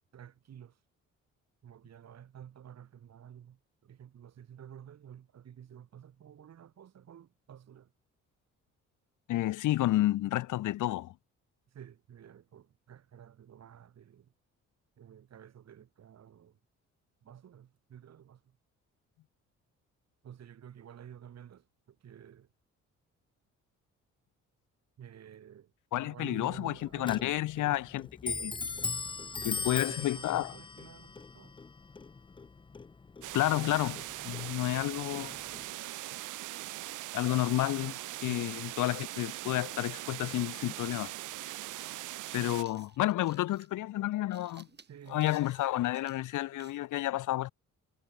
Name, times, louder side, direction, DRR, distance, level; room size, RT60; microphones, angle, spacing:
voice 1, 0.1-0.8 1.6-7.9 11.7-14.3 15.0-16.6 17.2-18.6 20.2-22.5 25.0-25.7 26.0-27.8 29.3-31.6 38.2-38.5 44.8-45.3, right 9 dB, 60° right, 3.5 m, -51 dB
voice 2, 9.3-11.1 25.9-28.5 29.4-30.5 33.3-35.3 37.1-41.1 42.3-44.7 45.1-47.5, left 15 dB, 80° left, 1.4 m, -31 dB
Clock, 26.5-35.7, left 4 dB, 15° left, 0.5 m, -40 dB
sound 1, 33.2-42.6, right 17 dB, 85° right, 1.0 m, -41 dB
sound 2, 42.4-46.9, right 5 dB, 35° right, 6.3 m, -59 dB
cardioid pair, 90°, 30 cm